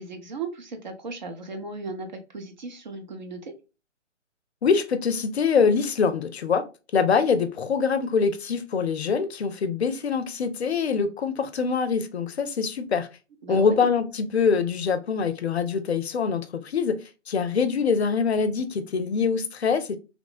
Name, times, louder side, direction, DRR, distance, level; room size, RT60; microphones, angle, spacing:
voice 1, 0.0-3.5 13.4-13.9, right 3 dB, 40° right, 0.6 m, -36 dB
voice 2, 4.6-6.6 6.9-13.1 13.5-17.0 17.3-20.0, left 5 dB, 60° left, 0.5 m, -24 dB
3.1 x 2.0 x 2.4 m
figure-of-eight pair, 130°, 37 cm